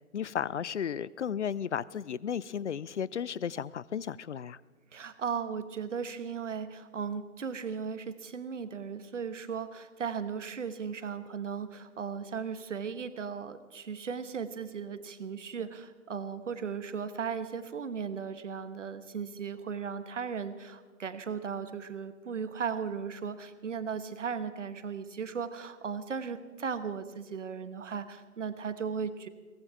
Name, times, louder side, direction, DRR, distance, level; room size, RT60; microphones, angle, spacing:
voice 1, 0.0-4.6, left 8 dB, 55° left, 21 dB, 0.5 m, -34 dB
voice 2, 4.9-29.3, right 6 dB, 55° right, 11 dB, 1.3 m, -36 dB
22.0 x 18.5 x 3.5 m, 1.4 s
figure-of-eight pair, 135°, 43 cm